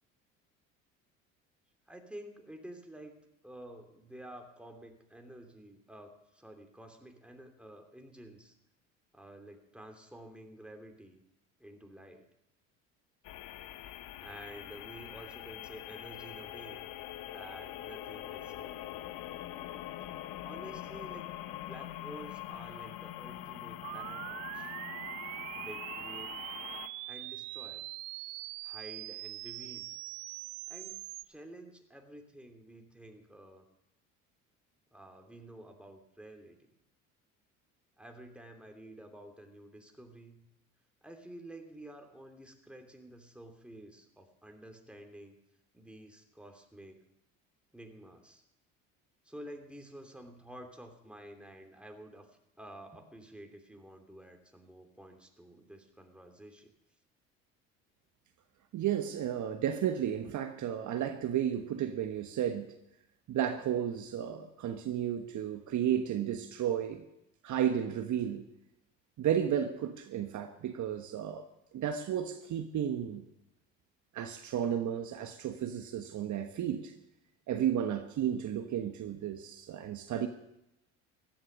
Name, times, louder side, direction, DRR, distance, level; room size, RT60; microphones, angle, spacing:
voice 1, 1.9-8.5 9.1-11.2 11.6-12.3 14.2-16.8 17.2-18.8 20.4-24.7 25.5-26.3 27.1-27.9 28.6-29.9 30.7-31.0 31.2-33.7 34.9-36.7 38.0-40.4 41.0-45.4 45.7-47.0 47.7-48.4 49.2-52.3 52.6-56.7, right 1 dB, 5° right, 3.0 m, -50 dB
sound 1, 13.2-26.9, left 13 dB, 65° left, 1.0 m, -44 dB
sound 2, 23.8-31.2, right 19 dB, 75° right, 0.7 m, -42 dB
voice 2, 58.7-62.7 63.3-67.0 67.4-68.5 69.2-71.5 71.7-73.3 74.1-76.9 77.5-80.3, right 9 dB, 50° right, 1.3 m, -33 dB
15.5 x 11.5 x 6.5 m
hypercardioid pair, 65°, 38 cm